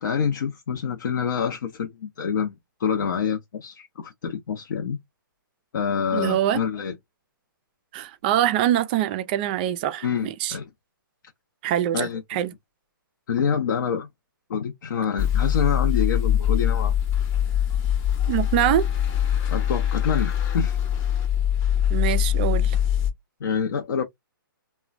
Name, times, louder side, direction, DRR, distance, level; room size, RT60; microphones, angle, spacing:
voice 1, 0.0-5.0 5.7-6.9 10.0-10.7 11.9-12.2 13.3-14.1 14.5-17.0 19.5-20.8 23.4-24.0, left 7 dB, 60° left, 0.6 m, -27 dB
voice 2, 6.1-6.6 7.9-10.5 11.6-12.5 18.3-18.9 21.9-22.8, right 12 dB, 25° right, 0.3 m, -24 dB
sound 1, 15.2-23.1, left 10 dB, 25° left, 0.8 m, -23 dB
3.0 x 2.1 x 2.4 m
hypercardioid pair, 150°, 12 cm